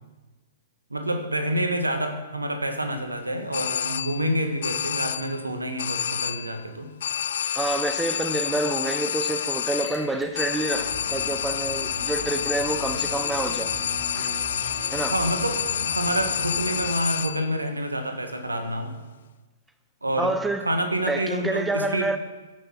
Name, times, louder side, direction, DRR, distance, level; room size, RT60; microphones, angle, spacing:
voice 1, 0.9-6.9 15.0-18.9 20.0-20.3 20.6-22.1, right 1 dB, 85° right, 6 dB, 1.5 m, -28 dB
sound 1, 3.5-4.3 4.6-5.4 5.8-6.6 7.0-17.5, left 9 dB, 55° left, 0.3 m, -29 dB
voice 2, 7.4-13.7 14.9-15.2 20.2-20.7 21.1-22.2, right 2 dB, 5° right, 9 dB, 0.7 m, -27 dB
Liquid, 9.2-17.3, left 1 dB, 10° left, 2.5 m, -50 dB
sound 2, 10.7-16.9, right 1 dB, 65° right, 4.3 m, -38 dB
14.5 x 6.7 x 5.8 m, 1.2 s
figure-of-eight pair, 115°, 0 cm